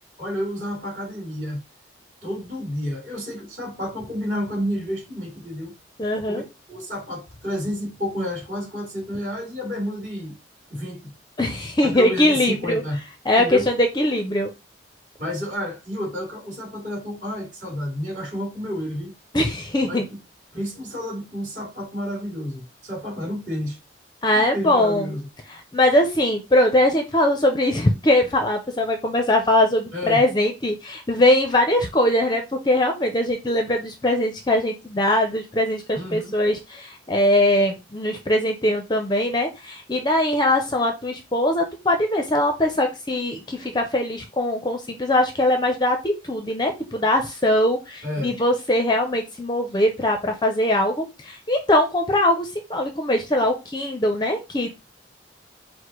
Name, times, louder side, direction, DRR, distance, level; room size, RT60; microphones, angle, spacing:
voice 1, 0.2-1.6 2.2-5.7 6.3-6.4 6.7-10.4 10.7-11.1 11.8-13.0 13.4-13.7 15.2-19.1 19.8-20.2 20.5-23.8 24.3-25.3 29.9-30.2 35.9-36.4 48.0-48.3, equal, 40° right, 2.8 m, -30 dB
voice 2, 6.0-6.4 11.4-12.8 13.2-14.5 19.3-20.1 24.2-25.1 25.5-54.7, left 1 dB, 20° left, 0.5 m, -21 dB
4.8 x 2.1 x 4.5 m
head